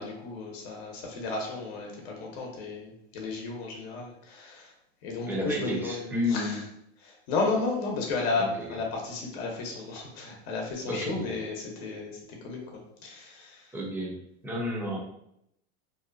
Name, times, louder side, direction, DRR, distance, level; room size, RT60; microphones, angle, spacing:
voice 1, 0.0-4.7 5.0-6.6 7.0-12.6 13.0-13.7, left 3 dB, 65° left, 0 dB, 0.8 m, -33 dB
voice 2, 5.3-6.6 8.4-8.8 10.9-11.1 13.7-14.1 14.4-15.0, left 1 dB, 5° right, -3 dB, 0.5 m, -31 dB
2.8 x 2.1 x 2.5 m, 0.76 s
supercardioid pair, 130°, 33 cm